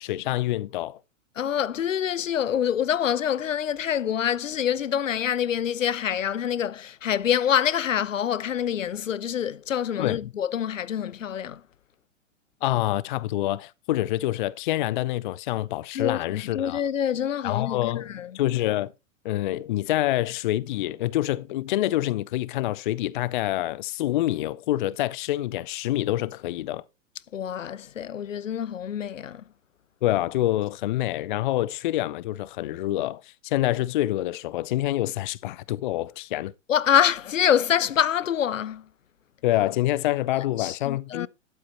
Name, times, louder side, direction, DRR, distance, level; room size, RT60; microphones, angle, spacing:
voice 1, 0.0-1.0 10.0-10.2 12.6-16.8 17.4-18.1 18.3-18.9 19.2-26.8 30.0-36.5 39.4-41.3, left 15 dB, 40° left, 0.4 m, -26 dB
voice 2, 1.4-11.6 15.9-18.4 27.3-29.4 36.7-38.9 40.6-41.3, left 9 dB, 75° left, 0.7 m, -26 dB
12.0 x 8.5 x 2.9 m
figure-of-eight pair, 110°, 39 cm